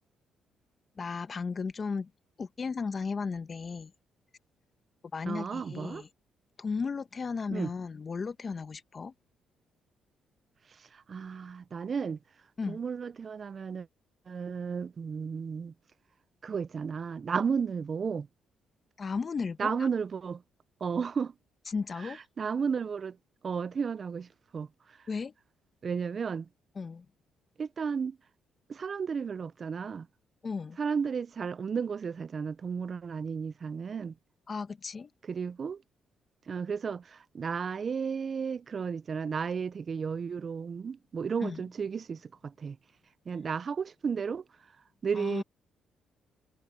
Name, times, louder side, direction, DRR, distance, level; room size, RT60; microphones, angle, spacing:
voice 1, 1.0-2.1 2.4-3.9 5.1-6.1 6.6-9.1 12.6-12.8 19.0-19.9 21.7-22.2 25.1-25.3 26.7-27.1 30.4-30.8 34.5-35.1 41.4-41.6 45.1-45.4, left 5 dB, 40° left, 1.1 m, -35 dB
voice 2, 5.3-6.0 7.5-7.7 10.8-12.2 12.7-13.9 14.3-15.7 16.4-18.3 19.6-20.4 20.8-21.3 22.0-23.2 23.4-24.7 25.8-26.5 27.6-28.2 28.7-30.1 30.8-34.1 35.2-35.8 36.5-42.8 43.3-44.4 45.0-45.4, right 6 dB, 45° right, 0.6 m, -33 dB
cardioid pair, 90°, 0 cm